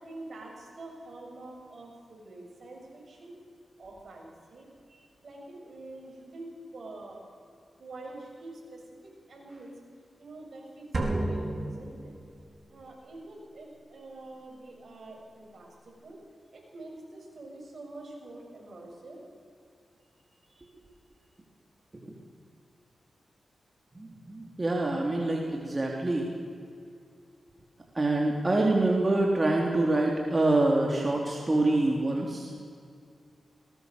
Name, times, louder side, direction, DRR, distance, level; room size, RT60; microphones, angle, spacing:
voice 1, 0.0-3.3 3.8-7.2 7.8-9.7 10.2-12.1 12.7-16.2 16.5-19.2 20.5-20.7, right 2 dB, 65° right, -1 dB, 7.1 m, -46 dB
sound 1, 10.9-12.6, right 1 dB, 45° right, 4.6 m, -32 dB
voice 2, 23.9-26.3 27.9-32.6, right 2 dB, 30° right, -1 dB, 3.4 m, -26 dB
21.0 x 20.0 x 6.8 m, 2.3 s
cardioid pair, 55°, 0 cm